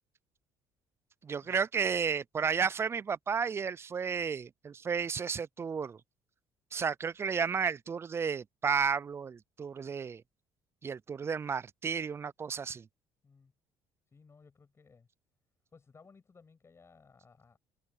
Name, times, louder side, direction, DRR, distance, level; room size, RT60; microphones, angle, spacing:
voice 1, 1.2-6.0 6.7-10.2 10.8-12.9, right 6 dB, 25° right, 0.3 m, -32 dB
voice 2, 14.1-15.1 15.7-17.6, left 5 dB, 25° left, 7.8 m, -59 dB
cardioid pair, 105°, 10 cm